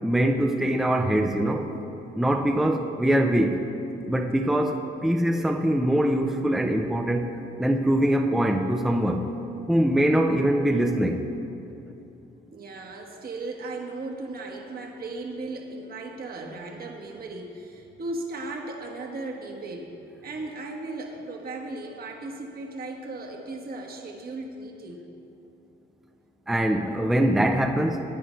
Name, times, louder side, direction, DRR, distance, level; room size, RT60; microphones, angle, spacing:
voice 1, 0.0-1.7 2.2-3.6 4.1-7.3 7.6-9.3 9.7-11.2 26.5-28.0, right 1 dB, ahead, 3 dB, 0.6 m, -23 dB
voice 2, 12.5-19.9 20.2-25.0, right 2 dB, 50° right, 1 dB, 1.4 m, -36 dB
15.5 x 9.5 x 3.1 m, 2.9 s
cardioid pair, 90°, 20 cm